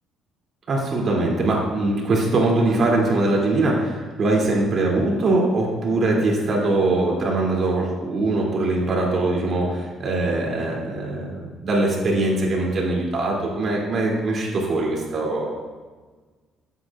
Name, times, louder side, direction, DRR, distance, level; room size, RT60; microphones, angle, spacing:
voice 1, 0.7-15.5, right 2 dB, 50° right, -2 dB, 2.8 m, -22 dB
13.5 x 8.4 x 2.5 m, 1.4 s
cardioid pair, 100°, 0 cm